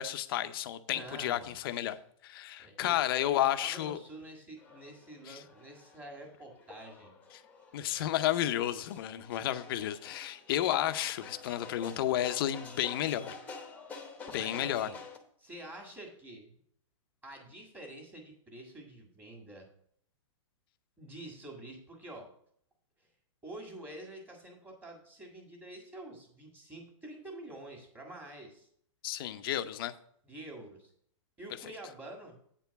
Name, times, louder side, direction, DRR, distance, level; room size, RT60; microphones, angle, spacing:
voice 1, 0.0-2.0 2.2-4.0 5.3-5.4 7.7-13.4 14.3-14.9 29.0-29.9, left 12 dB, 45° left, 10 dB, 0.6 m, -32 dB
voice 2, 0.9-2.0 2.6-3.0 3.3-7.1 14.3-15.0 15.4-16.5 17.2-19.7 21.0-22.3 23.0-23.1 23.4-28.7 30.2-30.9 31.4-32.4, right 1 dB, 10° right, 1 dB, 1.8 m, -47 dB
sound 1, 4.6-15.2, left 4 dB, 10° left, 1.0 m, -49 dB
8.9 x 4.5 x 6.9 m, 0.66 s
hypercardioid pair, 160°, 16 cm